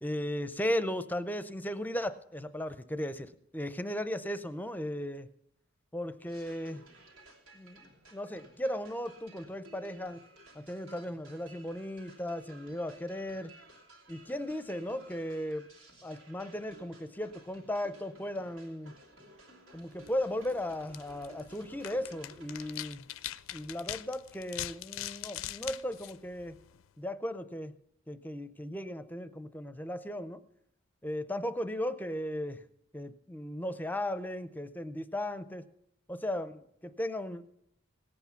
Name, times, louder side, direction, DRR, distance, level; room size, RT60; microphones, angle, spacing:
voice 1, 0.0-5.3 5.9-6.8 7.5-10.2 10.5-13.5 14.1-15.7 16.0-18.9 19.7-23.1 23.5-26.6 27.0-27.7 28.1-30.4 31.0-32.6 32.9-35.7 36.1-37.4, left 1 dB, 10° left, 12 dB, 0.5 m, -36 dB
sound 1, 6.3-22.7, right 1 dB, 85° right, 2.9 m, -56 dB
sound 2, 19.9-26.9, left 13 dB, 75° left, 0.4 m, -43 dB
18.0 x 8.4 x 5.7 m, 0.75 s
head